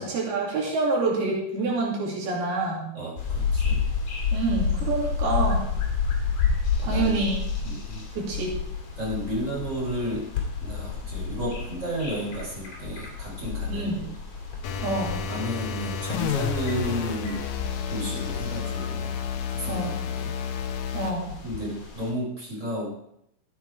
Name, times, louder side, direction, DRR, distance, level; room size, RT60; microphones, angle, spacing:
voice 1, 0.0-2.8 4.3-5.6 6.8-7.4 8.2-8.5 13.7-14.0 14.8-15.2 19.7-19.9 20.9-21.3, right 3 dB, 75° right, -2 dB, 4.7 m, -27 dB
voice 2, 2.9-3.8 6.8-7.3 7.6-8.1 9.0-10.3 10.6-14.2 15.2-17.5 17.9-19.2 19.5-20.3 21.4-22.9, equal, 20° right, -3 dB, 4.3 m, -33 dB
sound 1, 3.2-22.1, left 5 dB, 45° left, 3.5 m, -31 dB
sound 2, 14.6-21.2, left 7 dB, 80° left, 1.7 m, -31 dB
13.0 x 8.8 x 4.9 m, 0.75 s
omnidirectional pair, 4.4 m